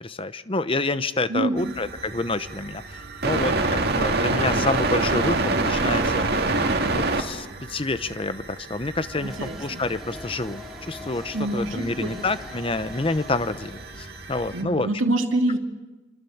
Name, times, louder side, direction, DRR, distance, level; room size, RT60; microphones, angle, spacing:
voice 1, 0.0-6.5 6.9-14.9, left 2 dB, 30° left, 13 dB, 0.9 m, -28 dB
voice 2, 1.3-1.7 9.2-9.8 11.3-12.2 14.5-15.6, right 1 dB, 85° right, 4 dB, 2.4 m, -26 dB
sound 1, 1.6-14.6, right 3 dB, 55° right, 2.3 m, -28 dB
sound 2, 9.1-14.2, left 1 dB, ahead, 2.8 m, -43 dB
26.5 x 25.0 x 7.2 m, 1.2 s
head